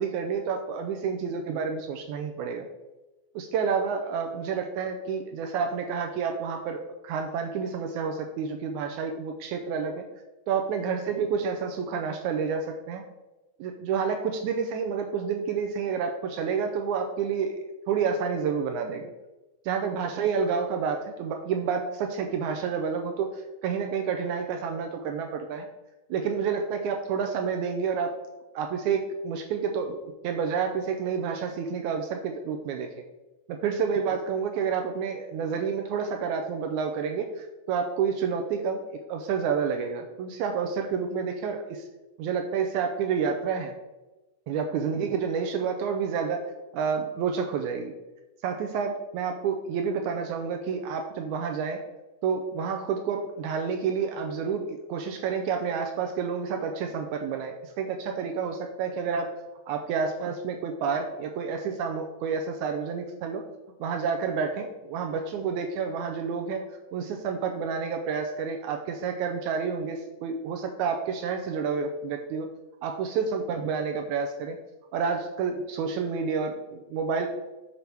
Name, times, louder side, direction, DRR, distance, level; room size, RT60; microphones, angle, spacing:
voice 1, 0.0-2.7 3.4-10.1 10.5-13.0 13.6-17.6 17.9-19.1 19.7-25.7 26.1-28.2 28.5-32.9 33.5-38.8 39.1-41.9 42.2-43.8 44.5-46.5 46.7-47.9 48.4-51.8 52.2-59.3 59.7-63.4 63.8-66.6 66.9-72.5 72.8-74.6 74.9-77.3, right 6 dB, 80° right, 4 dB, 1.9 m, -29 dB
6.7 x 5.5 x 4.5 m, 1.1 s
omnidirectional pair, 3.7 m